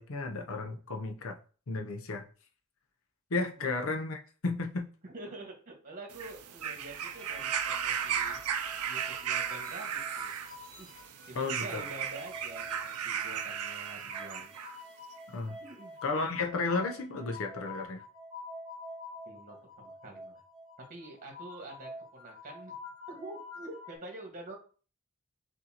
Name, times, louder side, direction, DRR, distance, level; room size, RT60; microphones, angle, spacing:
voice 1, 0.0-1.4 1.7-2.2 3.3-4.9 11.3-11.8 15.3-15.6 16.0-18.0, left 3 dB, 65° left, 4 dB, 0.7 m, -33 dB
voice 2, 5.0-8.4 8.9-10.3 10.7-10.9 11.3-14.5 15.6-15.9 19.2-20.3 20.9-22.8 23.1-24.6, right 2 dB, 35° right, 1 dB, 1.4 m, -47 dB
sound 1, 6.1-14.8 15.7-15.8, right 8 dB, 90° right, 0.5 m, -35 dB
sound 2, 7.0-11.3 11.6-24.0, left 2 dB, 10° left, 2.1 m, -48 dB
6.3 x 2.7 x 2.9 m, 0.38 s
head